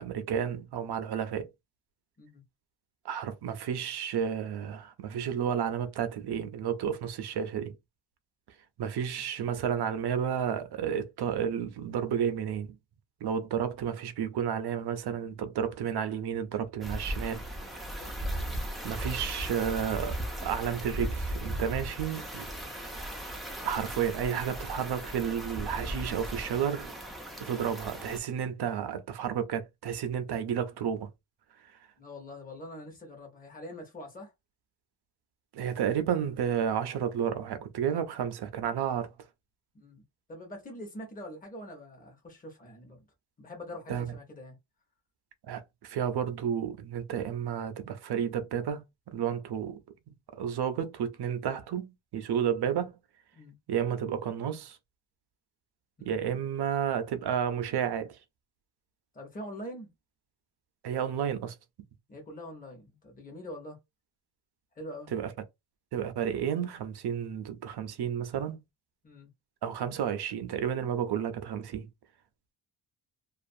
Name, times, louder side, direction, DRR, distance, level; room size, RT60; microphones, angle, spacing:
voice 1, 0.0-1.5 3.0-7.7 8.8-12.8 13.2-17.4 18.8-23.0 23.6-26.9 27.4-31.1 35.5-39.1 43.9-44.1 45.5-48.8 49.1-49.8 50.3-53.0 53.7-54.8 56.1-58.1 60.8-61.5 65.1-65.3 65.9-68.6 69.6-71.9, right 8 dB, 60° right, 0.5 m, -31 dB
sound 1, 16.8-28.2, right 1 dB, ahead, 0.3 m, -37 dB
voice 2, 32.0-34.3 39.7-40.0 40.3-43.0 43.4-44.6 53.3-53.6 56.0-56.2 59.1-59.9 62.1-63.8 64.8-65.1 69.0-69.3, left 1 dB, 20° left, 0.8 m, -44 dB
2.4 x 2.4 x 2.5 m
wide cardioid pair, 155°, 44 cm